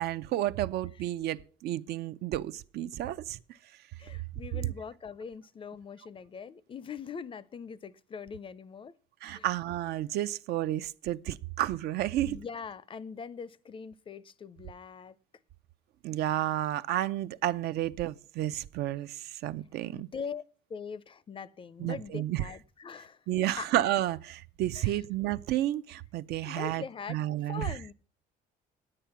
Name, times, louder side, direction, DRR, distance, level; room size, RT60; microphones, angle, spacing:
voice 1, 0.0-3.4 4.5-4.6 9.2-12.4 16.0-20.1 21.8-22.4 23.3-26.8 27.1-27.7, right 13 dB, 75° right, 0.5 m, -31 dB
voice 2, 4.0-8.9 9.3-9.5 12.2-15.1 19.9-20.4 20.7-23.2 23.5-23.7 24.7-25.0 26.4-27.2 27.4-27.9, left 6 dB, 30° left, 0.5 m, -42 dB
10.0 x 8.8 x 5.7 m
cardioid pair, 110°, 17 cm